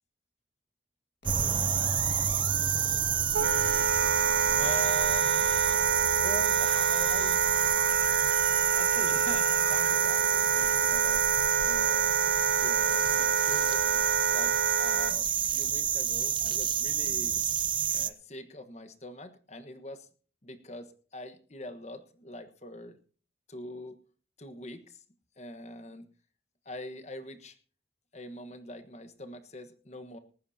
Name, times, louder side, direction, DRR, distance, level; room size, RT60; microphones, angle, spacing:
sound 1, 1.2-5.9 6.6-10.8, left 5 dB, 70° left, 1.7 m, -44 dB
sound 2, 1.3-18.1, right 8 dB, 25° right, 0.6 m, -28 dB
Wind instrument woodwind instrument, 3.3-15.2, right 6 dB, 75° right, 0.6 m, -28 dB
voice 1, 4.6-5.5 6.2-7.4 8.6-11.2 11.6-13.9 14.3-17.4 17.9-20.1 20.4-23.0 23.5-24.0 24.4-25.0 25.4-26.1 26.6-27.6 28.1-30.2, left 1 dB, 40° left, 10 dB, 1.3 m, -43 dB
19.0 x 15.0 x 2.8 m, 0.40 s
head